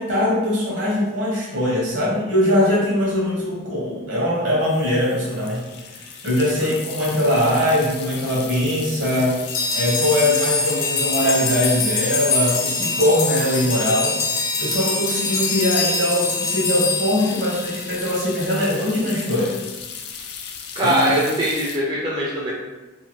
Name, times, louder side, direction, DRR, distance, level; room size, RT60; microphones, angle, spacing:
voice 1, 0.0-5.6 6.2-9.4 9.7-14.3 14.6-19.6 20.8-21.1, left 1 dB, 65° right, -5 dB, 1.0 m, -21 dB
sound 1, 2.7-2.8 3.0-3.2 4.6-21.8, left 7 dB, 55° left, 0.3 m, -36 dB
sound 2, 9.5-18.0, left 3 dB, 85° left, 0.7 m, -24 dB
voice 2, 20.8-22.5, right 1 dB, 20° right, -6 dB, 0.4 m, -21 dB
2.8 x 2.3 x 3.0 m, 1.1 s
head